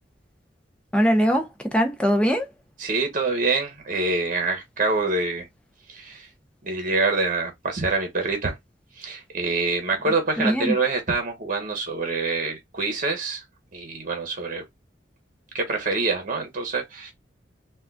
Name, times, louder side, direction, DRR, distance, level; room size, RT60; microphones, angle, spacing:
voice 1, 0.9-2.5 10.4-10.7, equal, 5° left, 0.8 m, -21 dB
voice 2, 2.8-5.5 5.9-6.3 6.6-8.6 9.0-13.4 13.7-14.6 15.5-17.1, right 3 dB, 50° right, 1.1 m, -26 dB
3.8 x 2.5 x 2.3 m
head